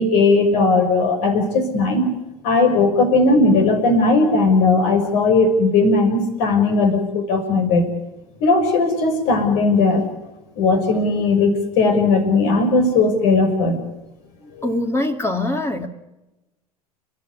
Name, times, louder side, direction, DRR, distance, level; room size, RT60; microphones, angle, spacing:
voice 1, 0.0-2.1 2.4-7.8 8.4-10.0 10.6-13.8 14.6-14.7, left 3 dB, 60° left, 5 dB, 6.0 m, -17 dB
voice 2, 14.6-15.9, left 1 dB, 15° left, 6 dB, 2.2 m, -23 dB
29.5 x 12.5 x 9.7 m, 1.0 s
hypercardioid pair, 80°, 19 cm